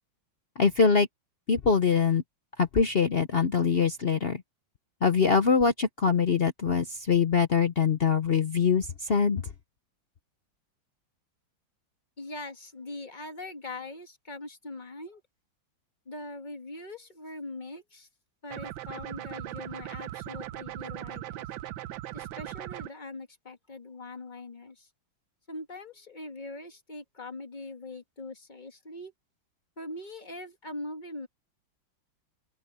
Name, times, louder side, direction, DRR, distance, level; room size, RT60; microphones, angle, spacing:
voice 1, 0.6-1.1 1.5-2.2 2.6-4.4 5.0-9.4, left 5 dB, 55° left, 0.6 m, -23 dB
voice 2, 12.2-15.2 16.0-18.1 18.4-21.4 22.1-24.9 25.5-29.1 29.8-31.3, left 2 dB, 25° left, 1.6 m, -42 dB
sound 1, 18.5-22.9, right 13 dB, 90° right, 1.5 m, -39 dB
open air
omnidirectional pair, 2.1 m